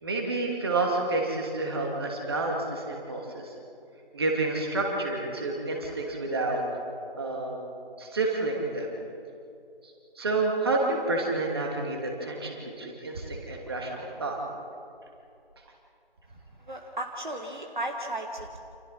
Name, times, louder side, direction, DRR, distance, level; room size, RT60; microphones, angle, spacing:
voice 1, 0.0-3.5 4.1-6.6 7.2-7.6 8.0-8.9 9.8-14.4, right 2 dB, 25° right, 0 dB, 2.8 m, -29 dB
voice 2, 16.7-18.6, right 1 dB, 50° right, 3 dB, 1.9 m, -35 dB
29.0 x 28.0 x 4.4 m, 2.6 s
figure-of-eight pair, 160°, 29 cm